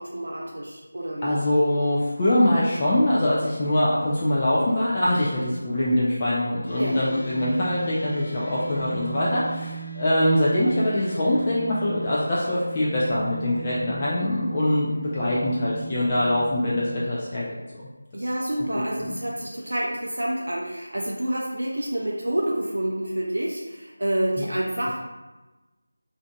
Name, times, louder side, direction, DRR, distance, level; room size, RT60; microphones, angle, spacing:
voice 1, 0.0-1.3 6.8-7.0 18.1-25.0, right 1 dB, 90° right, -3 dB, 0.4 m, -28 dB
voice 2, 1.2-17.5 18.1-18.2 18.7-19.2 24.4-24.5, left 1 dB, 25° left, -7 dB, 0.3 m, -23 dB
sound 1, 6.6-17.0, right 4 dB, 85° left, 0.7 m, -38 dB
2.5 x 2.4 x 2.2 m, 1.1 s
figure-of-eight pair, 170°, 0 cm